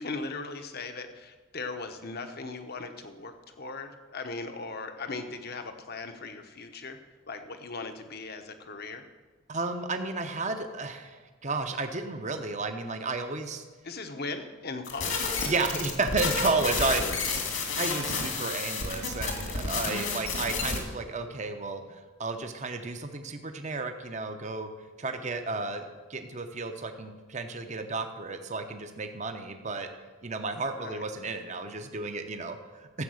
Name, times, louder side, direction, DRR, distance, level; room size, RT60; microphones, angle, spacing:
voice 1, 0.0-7.0 7.3-9.0 13.8-15.3 16.9-17.2 30.8-31.0, left 3 dB, 50° left, 7 dB, 1.0 m, -38 dB
voice 2, 9.5-13.6 15.4-17.0 17.7-24.7 25.0-29.9 30.2-33.0, right 3 dB, 35° right, 6 dB, 0.8 m, -32 dB
sound 1, 14.8-20.8, left 4 dB, 70° left, 2.5 m, -31 dB
13.0 x 7.8 x 6.4 m, 1.3 s
head